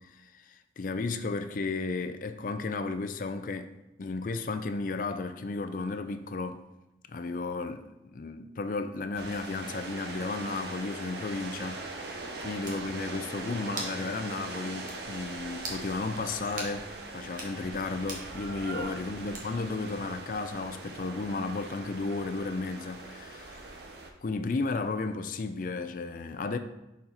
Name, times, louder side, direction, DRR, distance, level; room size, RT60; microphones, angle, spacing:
voice 1, 0.2-3.7 4.0-6.6 7.1-12.1 12.4-23.7 24.2-26.6, left 3 dB, 45° left, 0.4 m, -34 dB
sound 1, 9.1-24.1, right 2 dB, 60° right, 0.8 m, -41 dB
sound 2, 12.6-12.8 13.8-14.0 14.4-14.5 14.9-15.0 15.6-15.8 16.6-16.8 17.3-17.5 18.1-18.3 19.3-19.7, right 2 dB, 45° right, 1.2 m, -39 dB
6.7 x 4.1 x 4.1 m
head